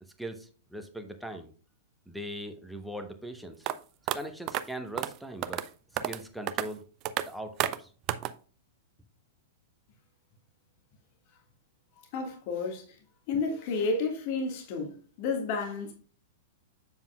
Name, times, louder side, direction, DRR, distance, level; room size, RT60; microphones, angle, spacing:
voice 1, 0.2-1.5 2.1-3.7 4.1-5.6 6.0-6.8 7.3-7.9, right 1 dB, ahead, 1.0 m, -40 dB
sound 1, 3.7-3.8 4.1-4.2 4.5-4.6 5.0-5.1 5.4-5.7 6.0-6.2 6.5-6.7 7.1-7.2 7.6-7.8 8.1-8.3, right 13 dB, 35° right, 0.4 m, -30 dB
voice 2, 12.1-13.0 13.3-15.9, left 4 dB, 45° left, 1.8 m, -31 dB
8.0 x 7.1 x 2.4 m
figure-of-eight pair, 100°, 0 cm